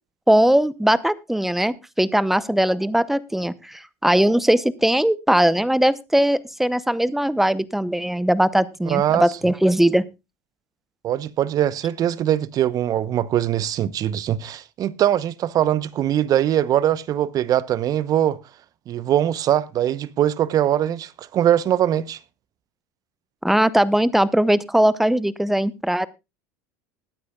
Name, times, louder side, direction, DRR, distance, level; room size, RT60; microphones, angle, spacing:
voice 1, 0.3-10.0 23.4-26.1, right 1 dB, 5° right, 0.8 m, -20 dB
voice 2, 8.8-9.3 11.0-18.4 18.9-22.2, right 11 dB, 45° right, 0.9 m, -21 dB
20.5 x 9.5 x 2.3 m
hypercardioid pair, 90°, 9 cm